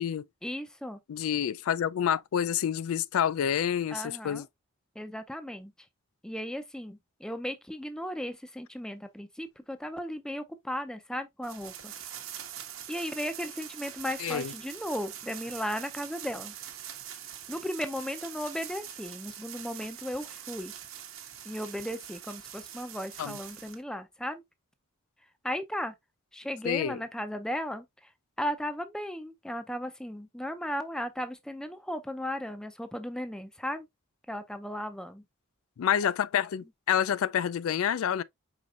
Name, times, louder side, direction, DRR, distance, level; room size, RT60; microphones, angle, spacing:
voice 1, 0.4-1.0 3.9-4.4 5.0-5.7 6.2-11.9 12.9-16.5 17.5-20.7 21.5-24.4 25.4-25.9 26.3-27.8 28.4-33.9 34.3-35.2, equal, 5° left, 0.4 m, -36 dB
voice 2, 1.1-4.5 14.2-14.5 23.2-23.4 26.6-27.0 35.8-38.2, left 9 dB, 80° left, 0.3 m, -28 dB
sound 1, 11.4-23.8, right 10 dB, 75° right, 1.0 m, -43 dB
4.9 x 3.9 x 2.4 m
head